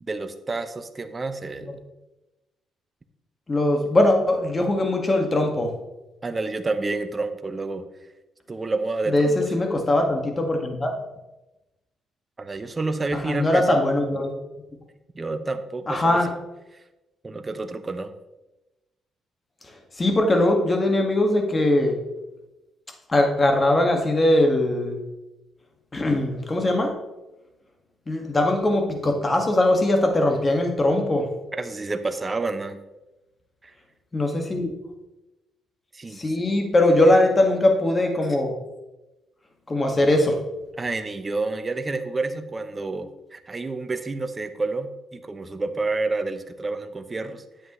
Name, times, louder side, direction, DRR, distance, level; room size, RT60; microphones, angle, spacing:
voice 1, 0.0-1.8 6.2-7.8 8.5-9.5 12.4-13.7 15.1-16.2 16.7-16.8 17.2-18.1 31.5-32.8 33.6-33.7 35.9-36.3 40.8-47.4, right 3 dB, 25° right, 9 dB, 0.8 m, -29 dB
voice 2, 3.5-5.7 9.1-10.9 13.2-14.3 15.9-16.3 20.0-22.0 23.1-25.0 25.9-26.9 28.1-31.3 34.1-34.7 36.2-38.5 39.7-40.4, left 1 dB, 25° left, 3 dB, 1.8 m, -21 dB
10.0 x 7.8 x 3.2 m, 0.99 s
cardioid pair, 90°, 0 cm